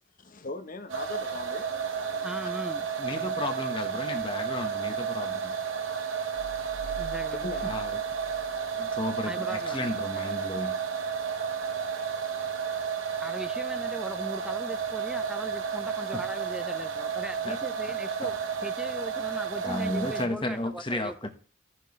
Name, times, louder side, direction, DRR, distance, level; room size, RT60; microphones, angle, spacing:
voice 1, 0.2-2.3 7.4-7.7, left 3 dB, 45° left, 0.9 m, -39 dB
sound 1, 0.9-20.3, right 6 dB, 80° right, 1.0 m, -32 dB
voice 2, 1.6-2.9 6.8-7.5 9.3-9.9 10.2-10.3 13.2-18.3 18.6-21.3, equal, 5° right, 0.4 m, -39 dB
voice 3, 3.0-5.5 7.6-7.9 8.8-10.7 16.1-16.2 17.4-17.6 18.2-18.3 19.6-21.3, left 1 dB, 25° left, 1.2 m, -33 dB
sound 2, 6.4-9.2, right 6 dB, 50° right, 0.7 m, -45 dB
14.5 x 6.3 x 3.2 m
head